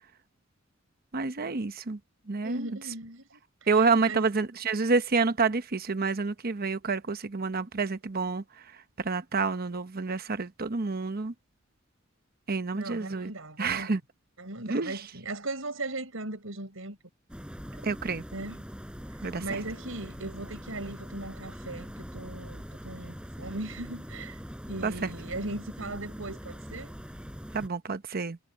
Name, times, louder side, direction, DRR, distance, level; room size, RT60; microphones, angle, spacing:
voice 1, 1.1-2.0 2.3-2.7 3.7-8.4 9.0-11.3 12.5-13.3 13.6-14.0 14.7-14.9 17.8-18.2 19.2-19.4 24.8-25.1 27.5-28.4, right 4 dB, 50° right, 0.9 m, -28 dB
voice 2, 2.4-4.3 12.7-14.0 14.4-17.0 18.3-18.6 19.4-24.4 24.7-26.9, right 2 dB, 85° right, 5.2 m, -38 dB
sound 1, 17.3-27.7, equal, 5° right, 6.7 m, -42 dB
head